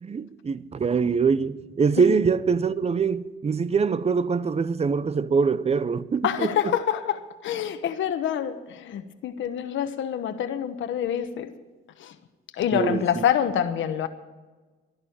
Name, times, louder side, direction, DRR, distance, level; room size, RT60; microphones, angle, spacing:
voice 1, 0.0-6.7 12.7-13.2, right 5 dB, 30° right, 0.7 m, -24 dB
voice 2, 6.2-11.5 12.0-12.1 12.5-14.1, left 9 dB, 75° left, 1.1 m, -26 dB
12.0 x 11.0 x 8.6 m
cardioid pair, 90°, 20 cm